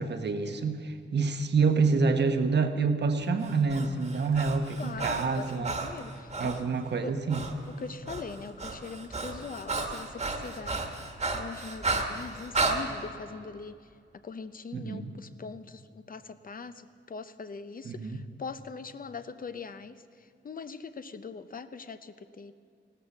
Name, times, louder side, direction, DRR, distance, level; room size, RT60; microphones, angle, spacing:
voice 1, 0.0-5.7 6.4-7.4 14.7-15.1 17.8-18.2, right 4 dB, 60° right, 7 dB, 1.1 m, -27 dB
Breathing, 3.4-6.6 7.3-7.5 7.8-12.8, right 3 dB, 35° right, 1.5 m, -33 dB
voice 2, 4.8-6.6 7.0-7.2 7.8-13.8 14.2-22.6, left 5 dB, 45° left, 11 dB, 0.6 m, -42 dB
16.0 x 12.5 x 7.1 m, 2.3 s
wide cardioid pair, 130°, 20 cm